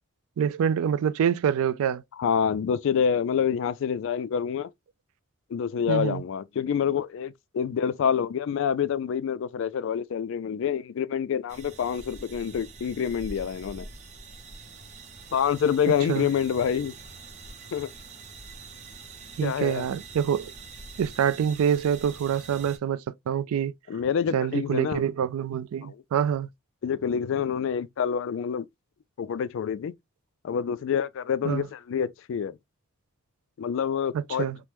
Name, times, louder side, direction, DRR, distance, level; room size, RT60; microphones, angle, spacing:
voice 1, 0.4-2.0 5.9-6.2 16.1-16.3 19.4-20.5 21.0-23.7 24.3-26.5 31.4-31.7 34.1-34.6, right 8 dB, 80° right, 0.3 m, -26 dB
voice 2, 2.2-4.7 5.5-13.9 15.3-16.9 17.7-17.9 19.4-19.9 23.9-25.0 25.9-26.0 26.8-28.7 29.2-29.9 30.4-32.5 33.6-34.4, left 7 dB, 60° left, 0.3 m, -27 dB
sound 1, 11.5-22.8, right 3 dB, 35° right, 0.6 m, -45 dB
3.4 x 2.1 x 2.9 m
head